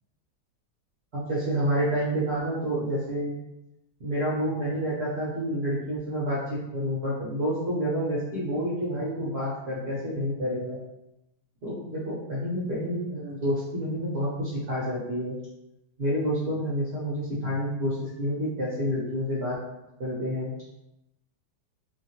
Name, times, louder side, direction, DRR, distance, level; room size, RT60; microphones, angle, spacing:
voice 1, 1.1-3.3 4.0-6.4 6.7-10.8 11.6-15.3 16.0-19.6 20.0-20.5, equal, 50° right, -7 dB, 0.8 m, -29 dB
2.9 x 2.6 x 2.8 m, 0.90 s
omnidirectional pair, 1.9 m